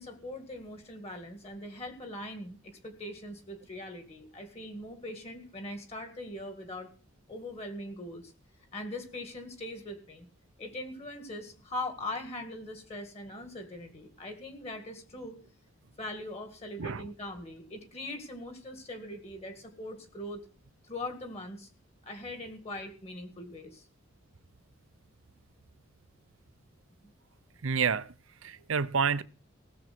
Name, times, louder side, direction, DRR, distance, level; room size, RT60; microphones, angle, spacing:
voice 1, 0.0-6.9 7.3-8.3 8.7-10.3 10.6-15.4 16.0-20.4 20.8-21.7 22.0-23.9 27.0-27.1 28.6-28.7, left 1 dB, 30° left, 2.0 m, -41 dB
voice 2, 27.6-28.1 28.4-29.2, right 6 dB, 70° right, 0.7 m, -28 dB
18.0 x 7.4 x 6.0 m
head